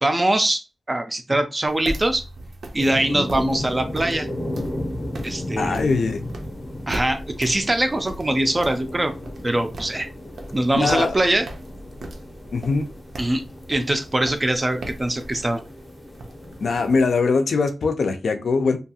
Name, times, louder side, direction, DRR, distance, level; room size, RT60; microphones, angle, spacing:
voice 1, 0.0-0.6 0.9-2.2 2.7-4.3 5.2-6.0 6.9-9.1 9.4-10.1 10.5-11.5 13.2-13.4 13.7-15.6, right 1 dB, 25° right, 0.3 m, -22 dB
sound 1, 1.7-17.1, right 1 dB, 85° right, 0.5 m, -39 dB
sound 2, 2.8-17.1, left 1 dB, 25° left, 0.5 m, -35 dB
voice 2, 5.6-6.2 10.8-11.1 12.5-12.9 16.6-18.8, left 4 dB, 80° left, 0.4 m, -21 dB
2.6 x 2.3 x 2.7 m
wide cardioid pair, 135°, 0 cm